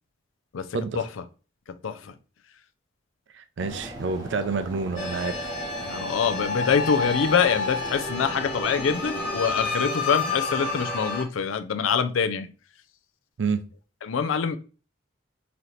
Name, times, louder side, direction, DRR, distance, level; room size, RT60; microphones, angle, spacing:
voice 1, 1.8-2.1 5.8-12.5 14.0-14.6, left 6 dB, 85° left, 0.4 m, -25 dB
voice 2, 3.4-5.4 13.4-13.6, right 4 dB, 70° right, 0.4 m, -28 dB
sound 1, 3.6-9.7, equal, 20° right, 0.6 m, -40 dB
sound 2, 5.0-11.2, left 3 dB, 25° left, 1.2 m, -30 dB
3.9 x 2.8 x 3.1 m
head